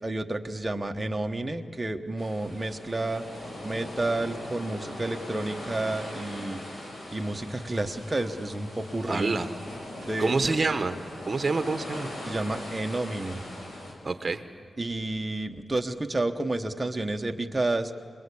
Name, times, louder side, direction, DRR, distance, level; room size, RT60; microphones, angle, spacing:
voice 1, 0.0-3.2 3.6-6.6 7.1-9.5 10.0-10.7 12.2-13.4 14.8-17.9, right 2 dB, 15° right, 5 dB, 1.0 m, -30 dB
sound 1, 2.2-13.9, left 1 dB, 65° left, 5.7 m, -40 dB
voice 2, 9.1-9.5 10.2-11.0 11.3-12.1 14.0-14.4, right 3 dB, 35° right, 10 dB, 1.3 m, -27 dB
26.0 x 21.5 x 8.5 m, 2.4 s
wide cardioid pair, 170°, 0 cm